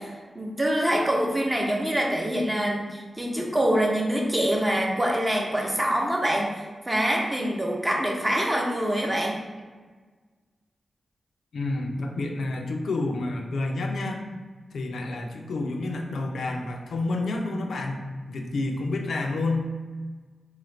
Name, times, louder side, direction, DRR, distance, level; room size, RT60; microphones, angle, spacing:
voice 1, 0.0-9.4, equal, 25° right, -1 dB, 0.7 m, -25 dB
voice 2, 11.5-14.2 14.7-19.7, left 2 dB, 85° left, 2 dB, 0.3 m, -29 dB
3.3 x 2.4 x 3.1 m, 1.4 s
cardioid pair, 55°, 0 cm